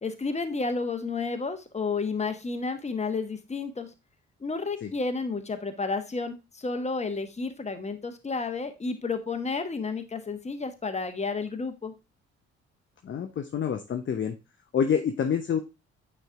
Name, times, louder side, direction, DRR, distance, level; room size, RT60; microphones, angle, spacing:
voice 1, 0.0-3.9 4.4-11.9, left 4 dB, 20° left, 7 dB, 1.1 m, -31 dB
voice 2, 13.0-14.3 14.7-15.6, left 7 dB, 35° left, 6 dB, 0.7 m, -27 dB
9.0 x 3.3 x 3.6 m, 0.27 s
figure-of-eight pair, 45°, 33 cm